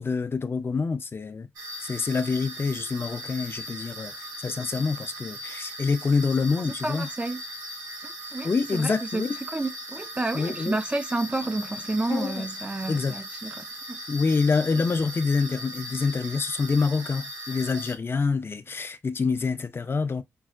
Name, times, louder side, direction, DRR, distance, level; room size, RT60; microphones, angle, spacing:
voice 1, 0.0-1.5 1.8-7.1 8.4-9.3 10.3-10.8 12.1-12.5 12.9-13.2 14.1-20.2, left 4 dB, 35° left, 0.5 m, -26 dB
sound 1, 1.6-18.0, equal, 65° right, 1.3 m, -39 dB
voice 2, 6.8-7.4 8.0-14.0, right 2 dB, 20° right, 0.5 m, -30 dB
5.3 x 2.0 x 2.4 m
supercardioid pair, 55°, 6 cm